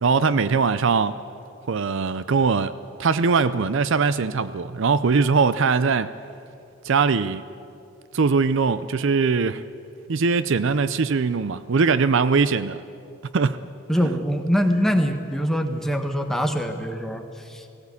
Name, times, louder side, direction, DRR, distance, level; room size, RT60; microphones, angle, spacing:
voice 1, 0.0-1.2 1.7-2.7 3.0-6.1 6.8-7.4 8.1-9.6 10.1-12.8 13.3-13.6, right 5 dB, 60° right, 14 dB, 0.5 m, -21 dB
voice 2, 13.9-17.6, equal, ahead, 4 dB, 1.2 m, -23 dB
18.0 x 17.0 x 8.5 m, 2.6 s
head